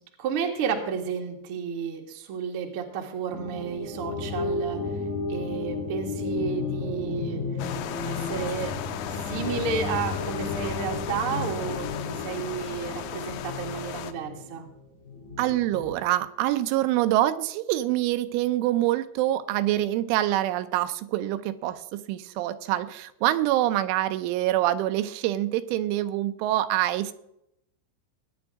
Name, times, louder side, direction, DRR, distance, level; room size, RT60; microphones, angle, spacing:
voice 1, 0.2-4.8 5.3-7.4 8.0-8.7 9.2-14.7, right 6 dB, 60° right, 1 dB, 1.4 m, -31 dB
sound 1, 3.3-16.0, left 4 dB, 50° left, 3.7 m, -33 dB
sound 2, 7.6-14.1, left 11 dB, 80° left, 2.9 m, -36 dB
voice 2, 15.4-27.1, right 14 dB, 85° right, 11 dB, 3.2 m, -25 dB
20.0 x 9.6 x 3.6 m, 0.78 s
omnidirectional pair, 5.4 m